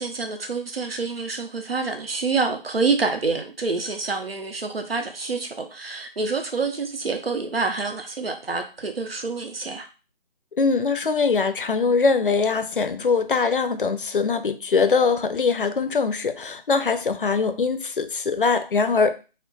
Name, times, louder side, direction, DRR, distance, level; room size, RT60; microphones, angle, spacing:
voice 1, 0.0-9.9, right 4 dB, 80° right, 0.8 m, -27 dB
voice 2, 10.6-19.1, left 4 dB, 65° left, 0.4 m, -22 dB
4.4 x 2.1 x 2.2 m
figure-of-eight pair, 160°, 29 cm